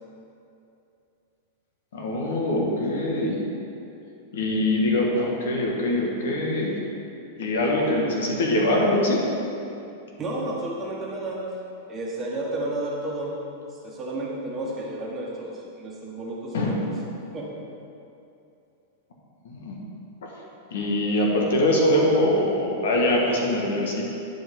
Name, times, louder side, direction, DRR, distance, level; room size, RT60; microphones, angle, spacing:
voice 1, 1.9-3.4 4.3-6.8 7.4-9.2 16.5-16.8 19.4-19.8 20.2-20.3 20.7-24.0, left 1 dB, 85° left, -1 dB, 1.6 m, -23 dB
voice 2, 10.2-11.5 11.9-13.4 13.8-16.9 17.3-17.5, right 1 dB, 20° right, -4 dB, 1.4 m, -32 dB
10.5 x 5.1 x 3.8 m, 2.7 s
supercardioid pair, 150°, 0 cm